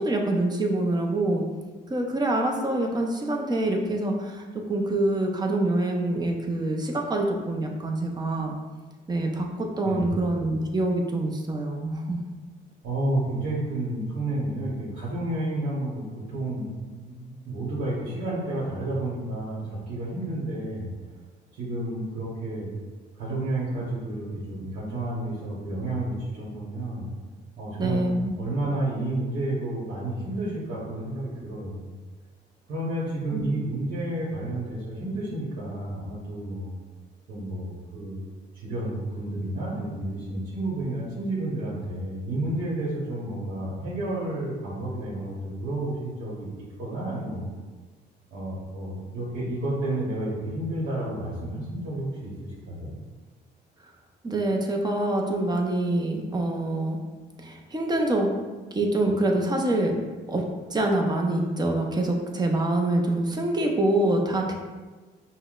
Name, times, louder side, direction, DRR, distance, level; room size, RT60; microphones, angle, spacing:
voice 1, 0.0-1.4 1.9-8.6 9.1-12.2 27.8-28.3 33.3-33.5 54.2-57.0 57.4-58.3 58.7-59.9 60.3-60.4 60.7-64.5, right 1 dB, 20° right, 1 dB, 0.6 m, -25 dB
voice 2, 9.8-10.1 12.8-20.9 21.5-22.7 23.1-27.1 27.6-28.1 28.4-31.9 32.7-36.8 37.3-38.2 38.5-46.5 46.8-47.5 48.3-52.9, right 1 dB, 75° right, -8 dB, 1.1 m, -31 dB
5.6 x 2.1 x 2.4 m, 1.3 s
cardioid pair, 90°, 20 cm